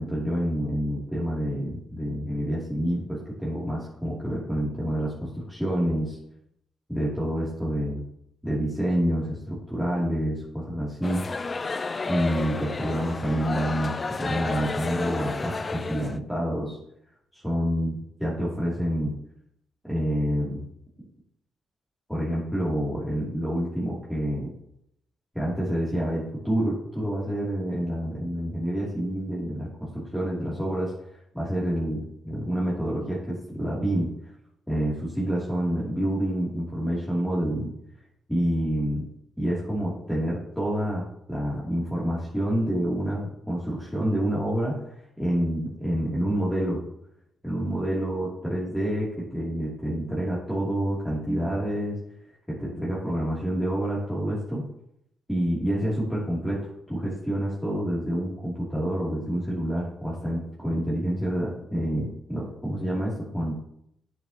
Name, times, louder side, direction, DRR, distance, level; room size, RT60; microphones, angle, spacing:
voice 1, 0.0-6.2 6.9-8.0 8.4-11.2 12.1-16.8 17.3-19.1 19.8-20.6 22.1-24.5 25.3-30.9 31.3-34.1 34.7-37.7 38.3-39.1 39.4-44.8 45.2-46.8 47.4-52.0 52.5-54.6 55.3-63.5, equal, ahead, -7 dB, 2.7 m, -28 dB
sound 1, 11.0-16.2, left 4 dB, 35° left, 0.4 m, -31 dB
8.6 x 6.9 x 2.9 m, 0.75 s
supercardioid pair, 65°, 0 cm